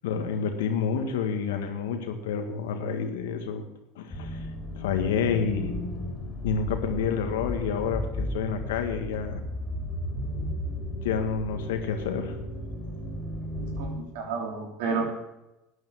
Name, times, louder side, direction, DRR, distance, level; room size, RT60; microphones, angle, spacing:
voice 1, 0.0-3.7 4.0-4.5 4.8-5.9 6.4-9.4 11.0-12.4, left 6 dB, 80° left, 6 dB, 1.8 m, -29 dB
sound 1, 4.1-14.0, left 1 dB, 30° left, 3.4 m, -34 dB
voice 2, 13.6-15.0, right 5 dB, 75° right, 2 dB, 3.2 m, -31 dB
11.5 x 9.3 x 7.2 m, 0.93 s
hypercardioid pair, 85°, 0 cm